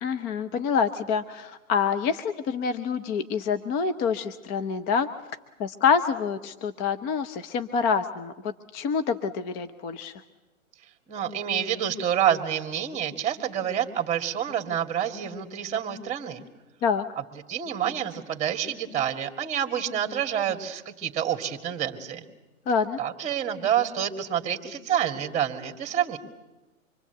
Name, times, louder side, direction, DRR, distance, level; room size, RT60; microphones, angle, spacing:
voice 1, 0.0-5.1 5.6-10.1 16.8-17.0 22.7-23.0, left 6 dB, 20° left, 9 dB, 0.8 m, -26 dB
voice 2, 11.1-16.4 17.5-22.2 23.0-26.2, right 9 dB, 15° right, 5 dB, 2.1 m, -28 dB
25.5 x 23.5 x 8.1 m, 1.1 s
figure-of-eight pair, 125°, 42 cm